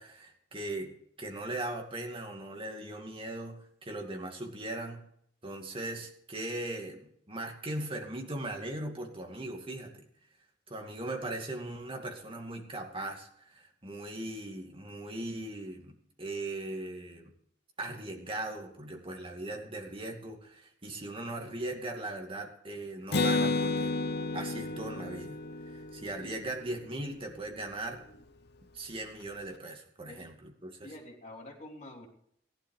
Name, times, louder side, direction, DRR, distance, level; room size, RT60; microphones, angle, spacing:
voice 1, 0.0-5.0 5.4-10.0 10.7-17.3 17.8-23.9 24.3-25.4 25.6-28.0 28.7-30.9, right 2 dB, 30° right, 2 dB, 2.4 m, -39 dB
Acoustic guitar, 23.1-26.8, left 3 dB, 60° left, 0.9 m, -31 dB
voice 2, 30.8-32.1, left 1 dB, 40° left, 0 dB, 3.4 m, -47 dB
15.5 x 11.5 x 4.9 m, 0.69 s
head